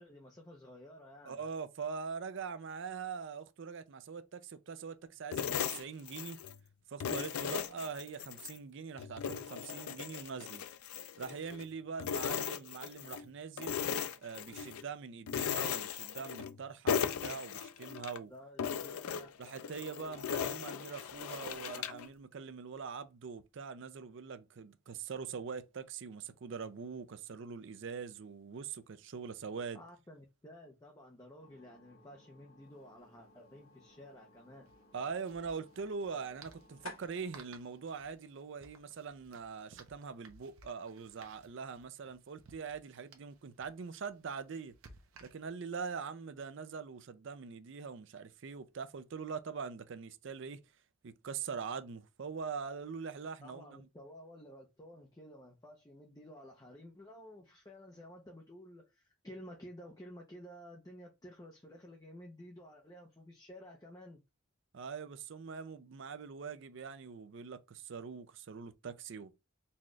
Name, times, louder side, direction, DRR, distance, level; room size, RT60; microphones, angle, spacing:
voice 1, 0.0-1.4 18.3-19.3 29.7-34.7 53.4-64.2, equal, 15° left, 0.6 m, -53 dB
voice 2, 1.2-6.4 6.9-10.6 11.2-13.8 14.2-18.3 19.4-29.8 34.9-44.8 45.2-50.6 51.0-53.9 64.7-69.5, right 5 dB, 60° right, 0.4 m, -43 dB
sound 1, 5.3-6.6 7.0-8.6 9.0-11.7 12.0-13.2 13.6-14.8 15.3-16.6 16.9-18.2 18.6-22.1, left 7 dB, 85° left, 0.4 m, -37 dB
sound 2, 31.4-39.1, left 2 dB, 70° left, 1.4 m, -57 dB
sound 3, 32.6-32.7 32.9-33.1 34.6-45.8, right 4 dB, 75° right, 0.8 m, -60 dB
4.2 x 2.4 x 3.1 m
head